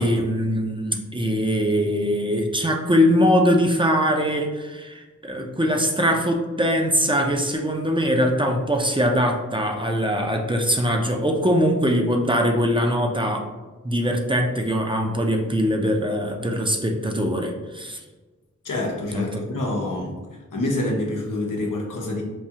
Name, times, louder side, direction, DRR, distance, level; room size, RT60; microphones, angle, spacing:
voice 1, 0.0-13.5 13.8-18.0 19.1-19.4, equal, 15° right, 2 dB, 0.5 m, -22 dB
voice 2, 18.6-20.2 20.5-22.2, left 1 dB, 90° left, -1 dB, 0.7 m, -26 dB
4.7 x 2.3 x 2.8 m, 1.2 s
cardioid pair, 45°, 31 cm